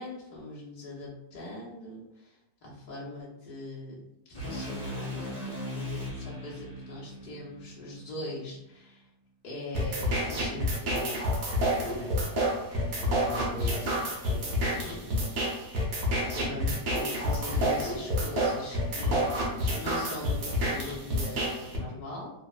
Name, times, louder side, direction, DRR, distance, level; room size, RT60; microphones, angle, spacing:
voice 1, 0.0-4.0 4.3-9.1 9.4-11.2 11.9-12.1 13.0-15.2 16.3-22.3, left 2 dB, 55° left, -5 dB, 0.5 m, -41 dB
sound 1, 4.3-8.5, left 1 dB, 35° left, 1.2 m, -39 dB
sound 2, 9.7-21.8, equal, 65° right, 1.0 m, -29 dB
2.8 x 2.0 x 2.3 m, 0.86 s
omnidirectional pair, 1.8 m